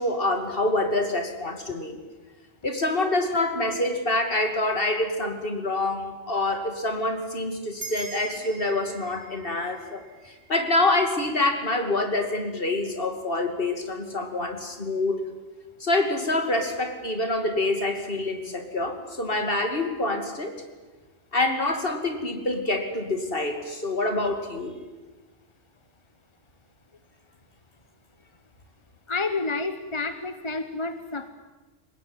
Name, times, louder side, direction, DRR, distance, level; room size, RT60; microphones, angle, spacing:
voice 1, 0.0-2.0 2.6-15.2 15.8-20.6 21.3-24.7, left 2 dB, 45° left, 6 dB, 2.9 m, -26 dB
sound 1, 7.8-12.5, right 4 dB, 55° right, 4.5 m, -44 dB
voice 2, 29.1-31.3, left 3 dB, 25° left, 10 dB, 1.0 m, -29 dB
23.5 x 20.0 x 9.7 m, 1.2 s
omnidirectional pair, 1.4 m